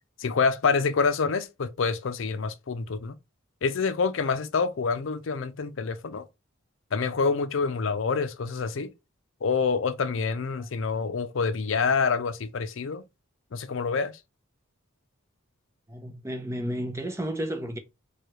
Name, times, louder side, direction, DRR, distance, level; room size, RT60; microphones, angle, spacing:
voice 1, 0.2-3.2 3.6-6.2 6.9-8.9 9.4-13.0 13.5-14.2, left 5 dB, 65° left, 0.5 m, -27 dB
voice 2, 15.9-17.8, equal, 15° right, 0.6 m, -32 dB
4.8 x 2.3 x 3.0 m
head